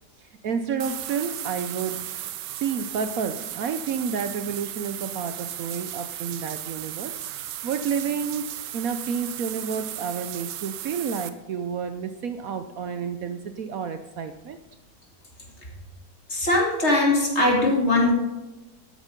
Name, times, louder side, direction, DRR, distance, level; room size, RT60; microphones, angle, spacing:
voice 1, 0.2-2.1 2.6-7.1 7.6-14.6, right 6 dB, 65° right, 8 dB, 1.0 m, -30 dB
sound 1, 0.8-11.3, right 12 dB, 85° right, 1.4 m, -35 dB
voice 2, 16.3-18.1, left 2 dB, 40° left, -1 dB, 2.9 m, -20 dB
13.0 x 9.1 x 5.2 m, 1.0 s
omnidirectional pair, 1.8 m